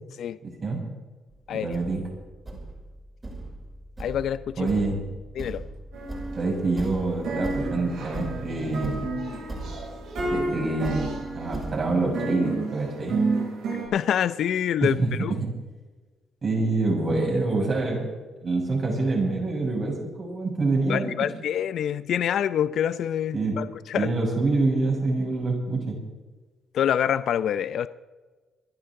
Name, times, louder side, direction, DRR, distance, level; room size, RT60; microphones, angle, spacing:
voice 1, 0.4-0.8 1.5-2.0 4.6-5.0 6.4-9.1 10.3-13.2 14.8-15.1 15.4-15.5 16.4-18.1 18.4-21.1 23.3-23.6 23.9-26.0, right 3 dB, 45° right, -2 dB, 6.7 m, -26 dB
Thump thud, 1.3-1.4 1.7-11.8, right 2 dB, 25° right, 5.8 m, -38 dB
voice 2, 1.5-1.8 4.0-4.7 5.3-5.6 13.9-15.3 20.9-24.1 26.7-27.9, left 9 dB, 70° left, 14 dB, 0.6 m, -26 dB
sound 1, 5.9-6.9 7.2-13.9, right 3 dB, 75° right, 6.1 m, -31 dB
26.5 x 11.5 x 3.8 m, 1.3 s
cardioid pair, 90°, 0 cm